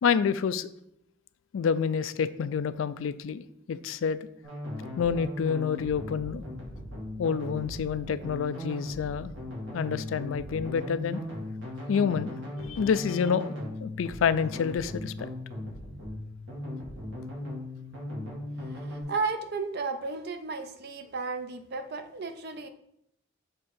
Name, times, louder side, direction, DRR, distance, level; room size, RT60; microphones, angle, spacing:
voice 1, 0.0-0.7 1.5-4.2 5.0-6.4 7.2-9.3 9.7-11.2 11.9-13.5 13.8-15.3, left 6 dB, 85° left, 14 dB, 0.4 m, -28 dB
sound 1, 4.4-19.0, left 1 dB, 75° right, 2.0 m, -38 dB
voice 2, 18.6-22.7, right 4 dB, 55° right, 8 dB, 0.6 m, -34 dB
6.6 x 3.6 x 4.3 m, 0.74 s
head